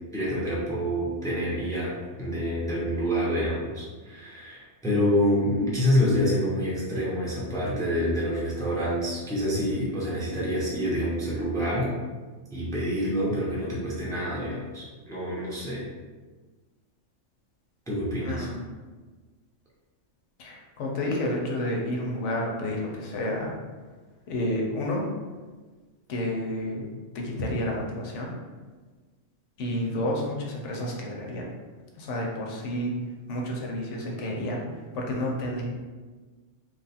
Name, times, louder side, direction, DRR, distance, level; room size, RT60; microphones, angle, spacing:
voice 1, 0.1-11.9 12.5-15.8 17.9-18.5, equal, 5° left, -6 dB, 0.6 m, -27 dB
voice 2, 18.2-18.6 20.4-23.5 24.3-25.1 26.1-26.9 27.1-28.3 29.6-31.5 32.0-32.9 33.3-34.6 34.9-35.6, left 1 dB, 75° left, -1 dB, 1.0 m, -30 dB
3.2 x 2.4 x 4.1 m, 1.4 s
omnidirectional pair, 1.3 m